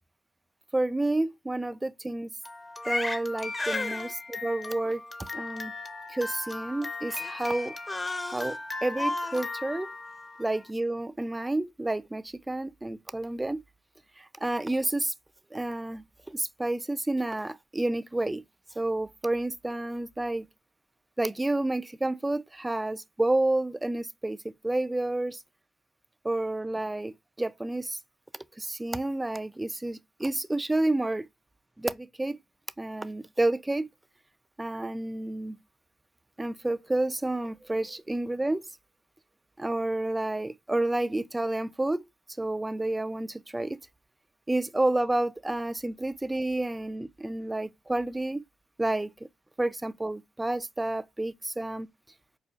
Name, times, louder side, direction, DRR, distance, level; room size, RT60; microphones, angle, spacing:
voice 1, 0.7-2.3 2.9-5.0 5.3-5.7 6.1-7.7 8.2-9.9 10.4-13.6 14.2-15.1 15.5-18.4 18.8-20.5 21.2-25.4 26.2-28.0 28.6-31.3 31.8-32.4 32.8-33.9 34.6-35.6 36.4-38.7 39.6-42.1 42.4-43.8 44.5-48.4 48.8-49.1 49.6-51.9, right 2 dB, 15° right, 0.3 m, -30 dB
Crying sobbing, 2.4-10.6, left 2 dB, 20° left, 0.7 m, -35 dB
5.0 x 2.4 x 2.3 m
cardioid pair, 90°, 0 cm